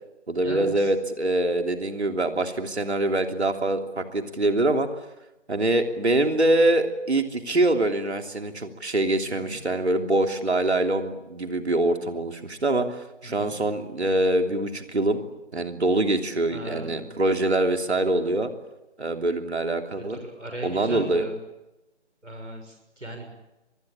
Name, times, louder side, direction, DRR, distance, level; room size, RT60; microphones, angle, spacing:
voice 1, 0.3-4.9 5.5-12.9 13.2-15.2 15.5-18.5 19.0-20.2 20.6-21.3, right 2 dB, 65° right, 5 dB, 3.2 m, -24 dB
voice 2, 13.2-13.6 16.5-17.1 20.1-21.4 22.2-23.3, right 1 dB, 85° right, 4 dB, 6.5 m, -37 dB
24.5 x 21.0 x 8.7 m, 0.96 s
figure-of-eight pair, 160°, 35 cm